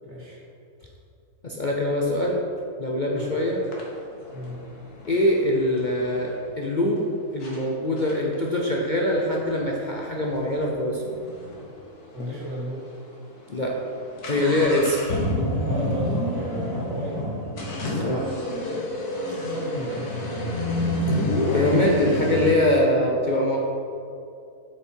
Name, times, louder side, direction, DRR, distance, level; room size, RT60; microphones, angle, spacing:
voice 1, 0.0-0.4 3.1-3.4 4.3-4.6 12.1-12.9 15.6-17.2 19.3-20.5, right 1 dB, 80° right, -6 dB, 2.6 m, -34 dB
voice 2, 1.4-2.4 2.8-3.6 5.1-11.2 13.5-13.8 14.3-15.0 17.9-18.3 21.5-23.6, left 1 dB, 45° left, -2 dB, 0.6 m, -23 dB
sound 1, 3.2-3.3 3.7-6.4 7.0-7.1 7.4-7.6 8.0-11.6 11.9-12.0 12.2-12.3 12.9-13.1 13.4-22.5, left 1 dB, 90° left, 1.9 m, -28 dB
7.8 x 6.4 x 4.5 m, 2.6 s
omnidirectional pair, 1.6 m